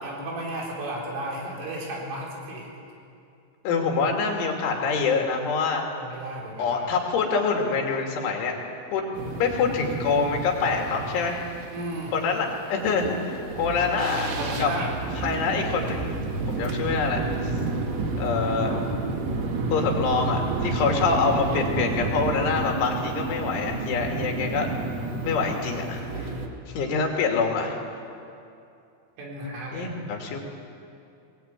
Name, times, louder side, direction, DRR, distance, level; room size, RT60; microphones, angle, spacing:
voice 1, 0.0-2.7 6.0-6.9 11.7-12.1 14.3-14.9 15.2-15.5 18.6-19.2 26.8-26.9 29.2-30.0, right 1 dB, 80° right, -2 dB, 6.7 m, -34 dB
voice 2, 3.6-5.8 6.6-8.6 8.9-9.0 9.4-11.4 12.1-14.3 14.6-14.7 15.2-16.1 16.5-17.5 18.2-18.7 19.7-24.7 25.2-26.3 26.7-27.8 29.7-30.4, left 4 dB, 80° left, 1 dB, 4.9 m, -25 dB
sound 1, 9.1-26.5, right 3 dB, 55° right, 1.9 m, -30 dB
22.0 x 19.0 x 9.1 m, 2.6 s
omnidirectional pair, 5.5 m